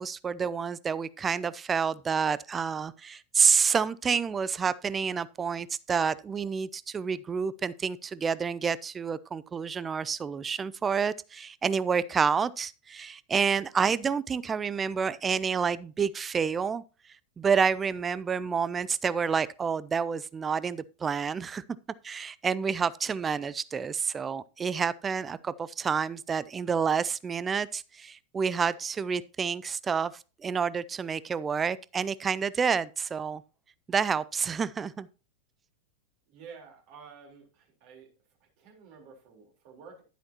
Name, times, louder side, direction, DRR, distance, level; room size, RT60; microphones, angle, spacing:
voice 1, 0.0-16.8 17.4-21.6 22.0-30.1 30.4-33.4 33.9-35.1, right 6 dB, 20° right, 0.5 m, -29 dB
voice 2, 36.3-38.1 38.4-40.0, right 5 dB, 45° right, 3.9 m, -50 dB
11.0 x 10.0 x 2.9 m
figure-of-eight pair, 90°, 0 cm